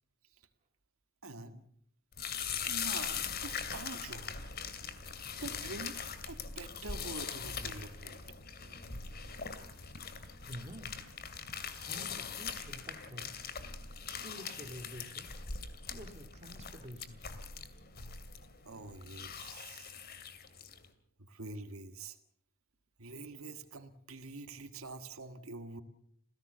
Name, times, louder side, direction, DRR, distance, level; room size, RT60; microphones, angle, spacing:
voice 1, 1.2-1.6 2.7-4.4 5.4-8.7 18.7-19.9 21.3-22.2 23.0-25.8, right 3 dB, 90° right, 8 dB, 1.8 m, -46 dB
sound 1, 2.1-20.9, left 6 dB, 50° left, 2.4 m, -41 dB
voice 2, 10.4-11.0 11.8-13.4 14.2-15.4 15.9-17.3, equal, 30° right, 5 dB, 2.4 m, -49 dB
28.0 x 16.5 x 6.9 m, 0.69 s
head